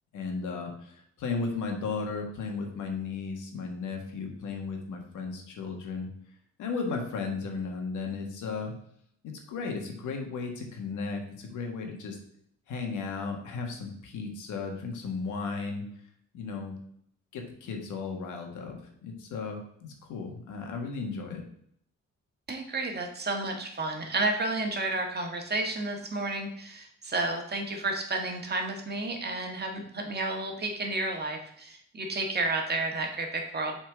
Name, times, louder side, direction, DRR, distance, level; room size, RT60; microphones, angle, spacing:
voice 1, 0.1-6.1 6.6-8.7 9.2-12.2 12.7-15.8 16.3-16.8 17.3-21.4, left 4 dB, 80° left, 3 dB, 1.6 m, -35 dB
voice 2, 22.5-33.8, right 2 dB, 35° right, 2 dB, 1.6 m, -31 dB
6.3 x 4.3 x 5.0 m, 0.68 s
cardioid pair, 90°, 30 cm